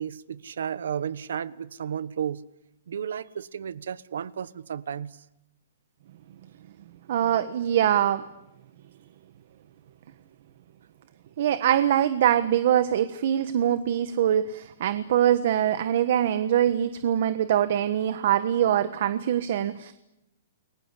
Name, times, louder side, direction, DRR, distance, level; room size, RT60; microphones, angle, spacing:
voice 1, 0.0-2.4 2.9-5.2, right 8 dB, 85° right, 1.2 m, -33 dB
voice 2, 7.1-8.2 11.4-19.9, right 10 dB, 50° right, 1.3 m, -23 dB
29.5 x 21.5 x 8.4 m
hypercardioid pair, 165°, 0 cm